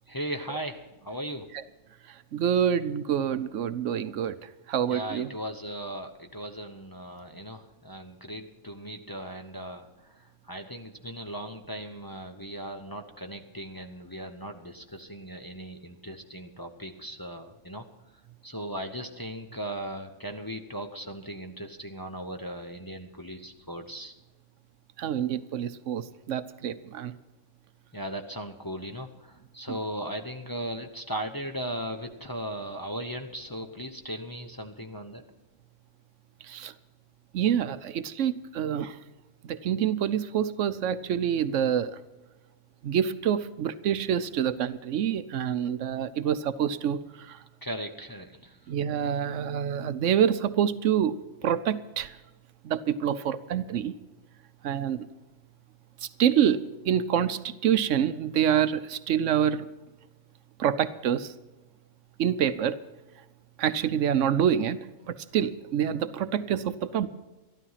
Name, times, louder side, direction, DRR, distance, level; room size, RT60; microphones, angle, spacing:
voice 1, 0.1-1.5 4.9-17.9 18.4-24.1 27.9-35.2 47.6-48.6, right 1 dB, 20° left, 4 dB, 0.8 m, -37 dB
voice 2, 2.3-5.3 25.0-27.1 29.7-29.8 36.4-36.7 37.3-39.0 39.4-42.0 42.8-47.4 48.7-51.1 51.4-52.2 52.6-53.9 54.6-55.0 56.0-59.7 60.6-61.3 62.2-62.8 63.6-64.8 65.1-67.1, right 9 dB, 75° right, 13 dB, 1.0 m, -27 dB
13.0 x 12.5 x 5.7 m, 1.1 s
omnidirectional pair, 1.3 m